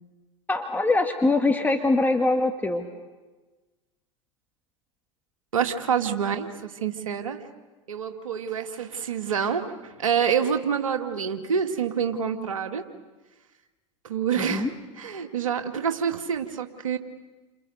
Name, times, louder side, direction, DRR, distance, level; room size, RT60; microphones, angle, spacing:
voice 1, 0.5-2.9 14.4-14.7, left 2 dB, 10° left, 4 dB, 2.1 m, -23 dB
voice 2, 5.5-7.4 7.9-12.8 14.0-14.7 15.0-17.0, right 7 dB, 80° right, 6 dB, 2.4 m, -27 dB
30.0 x 27.0 x 6.7 m, 1.2 s
hypercardioid pair, 85°, 17 cm